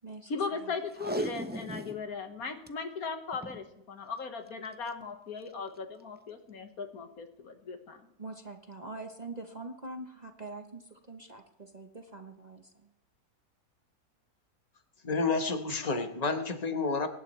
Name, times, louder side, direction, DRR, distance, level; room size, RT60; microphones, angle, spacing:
voice 1, 0.3-8.1, left 4 dB, 75° left, 6 dB, 1.8 m, -38 dB
Packing tape duct tape, 0.9-2.0 2.4-2.5 2.7-2.8 3.3-3.6 4.6-4.9 5.5-5.6, right 1 dB, 15° right, 0.3 m, -36 dB
voice 2, 8.2-12.9, right 2 dB, 35° right, 5 dB, 0.9 m, -44 dB
voice 3, 15.0-17.1, left 4 dB, 30° left, 6 dB, 1.2 m, -30 dB
24.0 x 11.5 x 3.2 m, 0.83 s
omnidirectional pair, 1.6 m